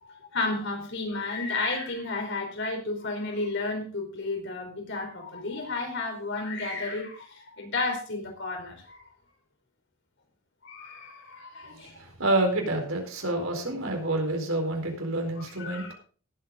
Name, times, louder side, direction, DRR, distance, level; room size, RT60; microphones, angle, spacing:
voice 1, 0.0-9.1 10.6-12.0 15.4-15.9, left 3 dB, 55° left, 3 dB, 4.4 m, -32 dB
voice 2, 11.6-15.9, right 2 dB, 70° right, 3 dB, 4.4 m, -28 dB
18.5 x 8.6 x 3.8 m, 0.39 s
head